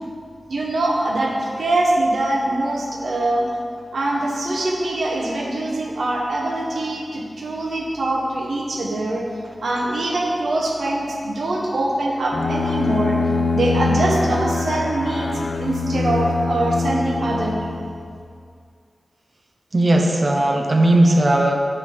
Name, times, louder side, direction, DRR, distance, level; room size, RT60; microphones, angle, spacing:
voice 1, 0.5-3.5 3.9-9.2 9.6-13.2 13.5-15.3 15.6-17.7, right 1 dB, 85° right, -1 dB, 0.9 m, -23 dB
Bowed string instrument, 12.3-18.1, left 3 dB, 60° left, 0.4 m, -23 dB
voice 2, 19.7-21.5, right 1 dB, 40° right, 2 dB, 0.7 m, -16 dB
5.1 x 4.8 x 5.4 m, 2.3 s
wide cardioid pair, 90°, 0 cm